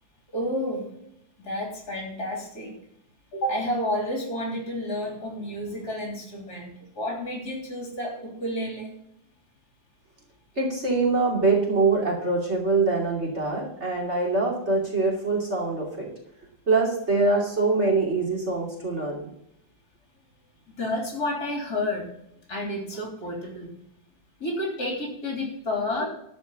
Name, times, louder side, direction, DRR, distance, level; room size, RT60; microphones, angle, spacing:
voice 1, 0.3-0.9 1.4-2.7 3.3-8.9 20.8-22.1 22.5-23.7 24.4-26.1, left 1 dB, 55° left, 0 dB, 3.9 m, -30 dB
voice 2, 10.6-16.1 16.7-19.3, right 3 dB, 35° right, -2 dB, 3.1 m, -24 dB
12.5 x 5.3 x 7.2 m, 0.74 s
omnidirectional pair, 2.0 m